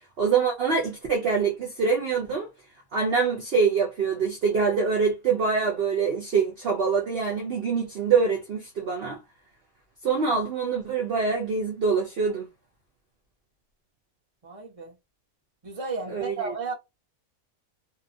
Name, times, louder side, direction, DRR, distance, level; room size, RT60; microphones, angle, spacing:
voice 1, 0.2-2.5 2.9-9.2 10.0-12.5 16.1-16.5, right 5 dB, 55° right, 0.8 m, -25 dB
voice 2, 14.4-14.9 15.6-16.7, right 4 dB, 30° right, 0.9 m, -33 dB
2.7 x 2.3 x 2.6 m
omnidirectional pair, 1.5 m